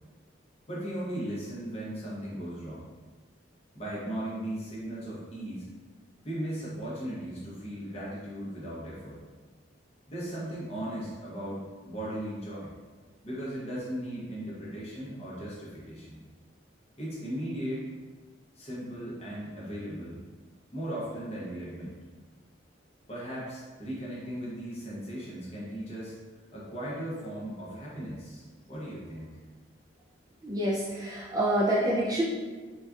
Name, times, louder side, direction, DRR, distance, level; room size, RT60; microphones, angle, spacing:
voice 1, 0.7-2.9 3.7-5.7 6.2-9.2 10.1-12.7 13.2-16.2 17.0-17.8 18.6-20.2 20.7-22.0 23.1-26.1 26.5-29.4, right 1 dB, 30° left, -6 dB, 0.8 m, -37 dB
voice 2, 30.4-32.2, right 1 dB, 20° right, -6 dB, 0.3 m, -27 dB
4.1 x 2.3 x 2.4 m, 1.4 s
head